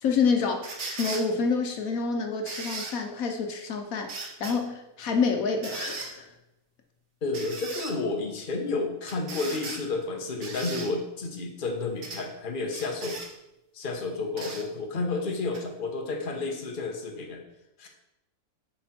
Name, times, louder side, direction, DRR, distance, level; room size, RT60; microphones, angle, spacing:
voice 1, 0.0-6.3, left 5 dB, 80° left, 4 dB, 1.3 m, -28 dB
sound 1, 0.6-1.2 2.5-2.9 4.1-4.5 5.6-6.1 7.3-7.9 9.1-9.8 10.4-10.9 12.0-12.2 12.7-13.3 14.4-14.6 15.5-15.6, right 3 dB, 60° right, 1.6 m, -37 dB
voice 2, 7.2-13.2 13.7-17.4 17.8-17.9, left 3 dB, 40° left, 2 dB, 1.2 m, -31 dB
9.8 x 4.5 x 4.3 m, 0.91 s
omnidirectional pair, 1.4 m